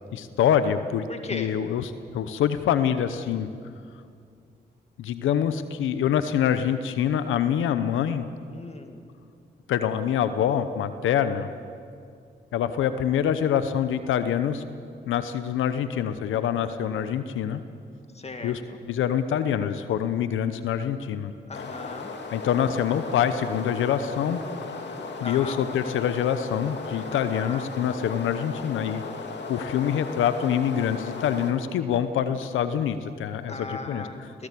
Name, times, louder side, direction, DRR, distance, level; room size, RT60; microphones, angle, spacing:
voice 1, 0.1-3.5 5.0-8.3 9.7-11.5 12.5-14.6 15.1-17.6 18.4-18.6 18.9-21.3 21.6-21.7 22.3-24.4 25.2-29.0 29.5-34.3, left 9 dB, 85° left, 11 dB, 0.9 m, -25 dB
voice 2, 1.1-1.5 8.5-9.0 18.1-18.8 21.5-22.1 25.2-25.6 27.1-27.7 29.5-30.0 33.5-34.5, left 2 dB, 35° left, 6 dB, 2.2 m, -38 dB
sound 1, 21.5-31.5, left 4 dB, 65° left, 2.6 m, -36 dB
18.0 x 17.0 x 8.5 m, 2.3 s
supercardioid pair, 55°, 20 cm